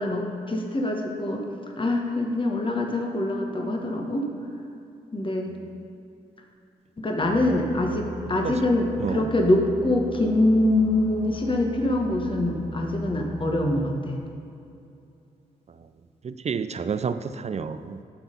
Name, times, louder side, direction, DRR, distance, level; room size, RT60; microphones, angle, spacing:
voice 1, 0.0-1.4 1.8-4.3 5.1-5.5 7.0-14.2, left 1 dB, 30° left, 1 dB, 1.3 m, -24 dB
sound 1, 7.2-13.7, right 3 dB, 20° right, 1.2 m, -40 dB
voice 2, 16.2-18.0, right 6 dB, 40° right, 12 dB, 0.4 m, -30 dB
11.5 x 4.0 x 5.3 m, 2.6 s
supercardioid pair, 45°, 17 cm